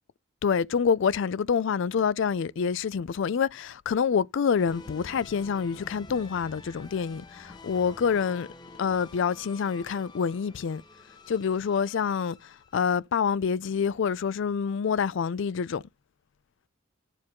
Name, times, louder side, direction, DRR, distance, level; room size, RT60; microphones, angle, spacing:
voice 1, 0.4-8.5 8.8-10.8 11.3-15.8, left 6 dB, 60° left, 0.4 m, -27 dB
sound 1, 4.6-13.0, left 3 dB, 20° left, 1.0 m, -48 dB
9.7 x 4.5 x 3.6 m
head